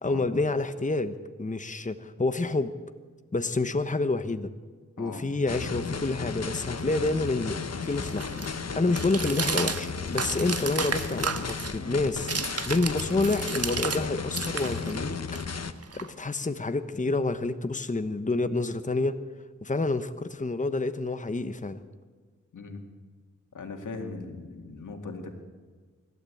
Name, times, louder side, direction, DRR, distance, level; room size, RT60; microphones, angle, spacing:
voice 1, 0.0-2.7 3.3-4.5 5.0-12.3 12.6-15.2 15.4-15.5 15.9-19.2 19.6-21.8, left 3 dB, 25° left, 10 dB, 1.1 m, -28 dB
sound 1, 5.5-15.7, left 5 dB, 55° left, 1.3 m, -34 dB
sound 2, 6.7-14.0 14.3-16.5, right 5 dB, 55° right, 1.5 m, -34 dB
voice 2, 23.5-25.4, left 3 dB, 85° left, 4 dB, 2.3 m, -39 dB
25.0 x 12.5 x 8.6 m, 1.5 s
cardioid pair, 50°, 30 cm